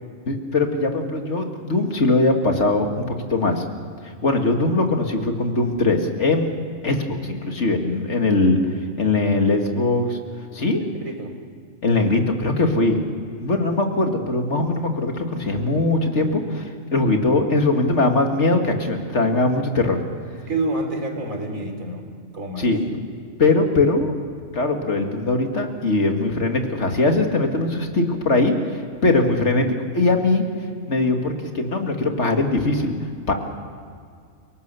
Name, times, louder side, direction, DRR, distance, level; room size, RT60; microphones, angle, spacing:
voice 1, 0.3-3.0 3.3-3.6 4.0-6.5 6.8-8.6 9.0-10.2 10.5-10.8 11.8-13.0 13.4-20.0 22.6-23.0 23.4-24.1 24.5-29.7 29.9-30.5 30.9-32.9 33.3-33.4, left 2 dB, 60° left, 4 dB, 2.4 m, -21 dB
voice 2, 10.8-11.3 20.5-22.0 22.3-22.7, right 2 dB, 90° right, 4 dB, 3.8 m, -28 dB
29.5 x 18.5 x 6.9 m, 2.2 s
omnidirectional pair, 1.4 m